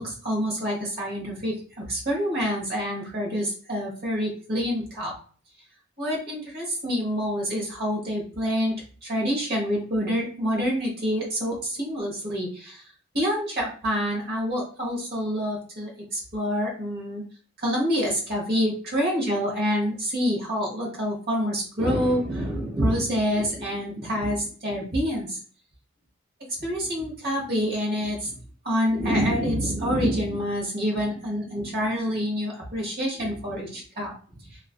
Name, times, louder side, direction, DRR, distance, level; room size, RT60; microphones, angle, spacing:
voice 1, 0.0-5.1 6.0-8.8 9.0-12.8 13.1-17.2 17.6-25.4 26.4-28.4 28.6-34.1, equal, 50° right, -2 dB, 1.0 m, -27 dB
2.5 x 2.3 x 2.3 m, 0.43 s
head